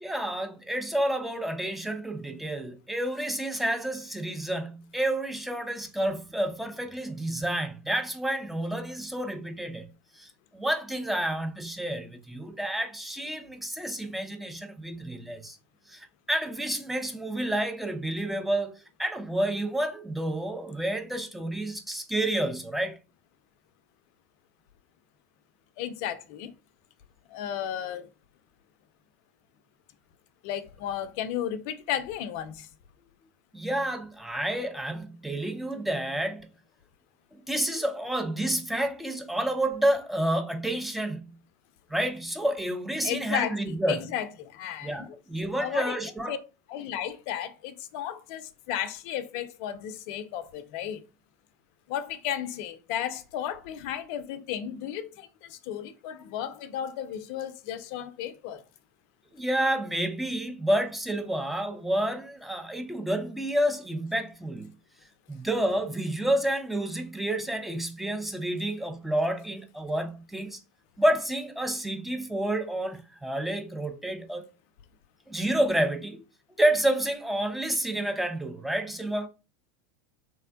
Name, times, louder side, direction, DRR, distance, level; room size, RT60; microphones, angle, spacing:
voice 1, 0.0-15.6 15.9-23.0 33.5-36.5 37.5-41.4 41.9-44.1 44.8-46.4 59.3-64.7 65.3-70.6 71.0-74.5 75.3-76.2 76.6-79.3, right 1 dB, ahead, 0.5 m, -29 dB
voice 2, 25.8-26.5 27.3-28.1 30.4-32.7 43.0-43.6 43.8-45.1 45.6-45.9 46.3-46.4 46.7-51.1 51.9-58.6, left 10 dB, 50° left, 0.4 m, -34 dB
3.3 x 2.1 x 2.5 m
figure-of-eight pair, 85°, 9 cm